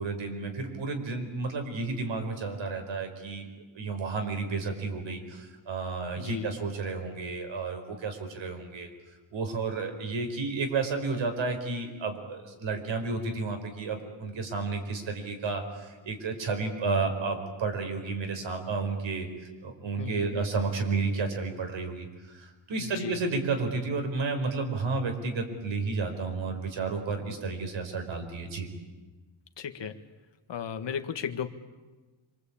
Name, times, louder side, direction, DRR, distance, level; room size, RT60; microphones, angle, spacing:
voice 1, 0.0-3.5 3.7-8.9 9.3-28.7, right 4 dB, 70° right, 5 dB, 4.9 m, -32 dB
voice 2, 6.2-6.6 20.0-20.4 22.8-23.2 29.6-30.0 30.5-31.5, left 7 dB, 60° left, 7 dB, 1.8 m, -35 dB
26.5 x 25.0 x 8.7 m, 1.2 s
wide cardioid pair, 145°, 48 cm